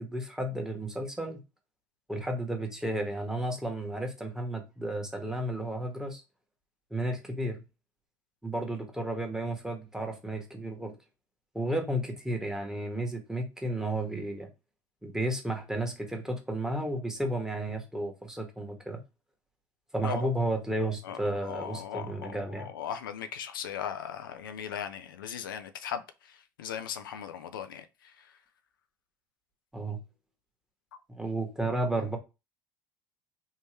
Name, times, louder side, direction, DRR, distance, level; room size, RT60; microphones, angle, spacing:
voice 1, 0.1-1.4 2.1-6.2 6.9-7.6 8.4-10.9 11.5-14.5 15.0-19.0 19.9-22.7 29.7-30.0 31.1-32.2, right 1 dB, 5° right, 1.3 m, -33 dB
voice 2, 21.0-28.3, left 9 dB, 85° left, 0.4 m, -38 dB
3.6 x 2.6 x 3.3 m
hypercardioid pair, 75°, 11 cm